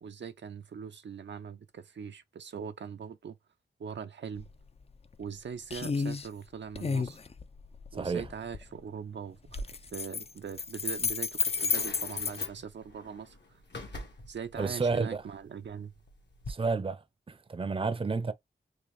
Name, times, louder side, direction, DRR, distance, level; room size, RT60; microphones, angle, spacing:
voice 1, 0.0-3.4 3.8-4.5 5.2-7.2 7.9-13.6 14.3-15.9, right 7 dB, 80° right, 0.5 m, -41 dB
sound 1, 4.4-4.5 4.9-5.4 5.7-6.3 6.8-8.7 9.5-12.5, left 5 dB, 35° left, 0.4 m, -32 dB
voice 2, 7.9-8.3 14.6-15.2 16.5-18.3, right 4 dB, 30° right, 0.5 m, -31 dB
sound 2, 9.5-16.5, left 1 dB, 75° left, 1.4 m, -46 dB
3.8 x 3.2 x 3.2 m
wide cardioid pair, 110°, 18 cm